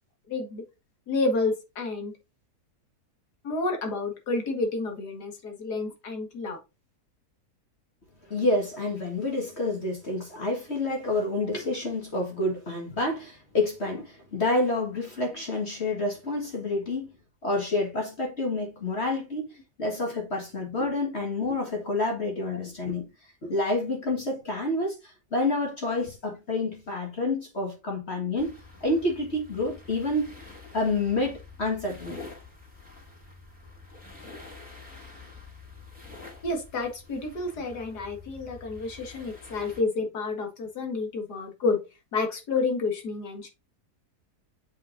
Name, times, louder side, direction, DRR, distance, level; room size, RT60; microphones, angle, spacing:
voice 1, 0.3-0.6 1.1-2.1 3.4-6.6 36.4-41.8 42.1-43.5, left 3 dB, 90° left, 2.4 m, -29 dB
voice 2, 8.3-17.1 17.4-19.5 19.8-23.1 23.4-30.3 30.7-32.2, left 2 dB, 45° left, 2.0 m, -28 dB
sound 1, 28.4-39.8, left 3 dB, 5° right, 2.5 m, -47 dB
8.1 x 5.1 x 2.6 m
omnidirectional pair, 1.7 m